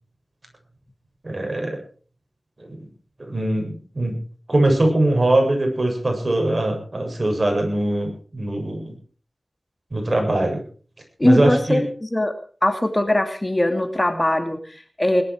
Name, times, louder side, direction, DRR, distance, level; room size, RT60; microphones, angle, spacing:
voice 1, 1.2-1.8 2.6-2.8 3.2-4.2 4.5-8.9 9.9-10.6 11.2-11.8, right 1 dB, 45° right, 3 dB, 7.7 m, -21 dB
voice 2, 11.2-12.3 12.6-15.2, left 1 dB, 25° left, 6 dB, 2.5 m, -21 dB
20.5 x 12.5 x 4.8 m, 0.41 s
cardioid pair, 40°, 0 cm